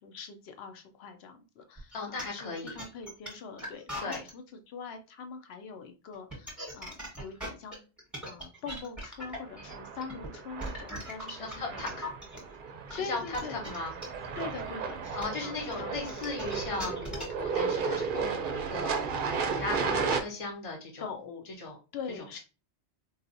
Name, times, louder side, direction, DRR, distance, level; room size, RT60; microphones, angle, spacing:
voice 1, 0.0-7.8 8.2-12.0 13.0-13.6 14.4-16.3 21.0-21.5 21.9-22.4, left 5 dB, 70° left, 6 dB, 0.8 m, -43 dB
sound 1, 1.8-4.3 6.1-12.4 12.9-17.5, equal, ahead, 1.1 m, -40 dB
voice 2, 1.9-2.8 4.0-4.2 11.3-12.0 12.9-13.9 15.1-19.0 19.4-21.1 21.6-21.8, left 3 dB, 35° left, 1 dB, 0.8 m, -37 dB
sound 2, 9.5-20.2, right 5 dB, 60° right, 0.6 m, -34 dB
4.0 x 2.3 x 2.5 m, 0.32 s
omnidirectional pair, 1.2 m